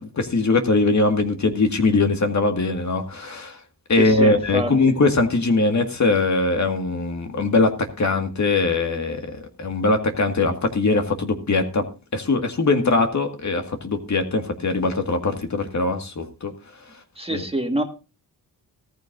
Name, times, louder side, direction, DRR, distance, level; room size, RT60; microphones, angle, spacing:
voice 1, 0.0-3.6 3.9-7.7 8.0-9.3 9.6-11.8 12.1-16.5 17.3-17.4, left 3 dB, 45° left, 5 dB, 1.9 m, -21 dB
voice 2, 3.9-4.7 17.2-17.8, right 1 dB, 15° right, 5 dB, 1.7 m, -25 dB
15.0 x 14.0 x 2.6 m, 0.32 s
cardioid pair, 75°, 40 cm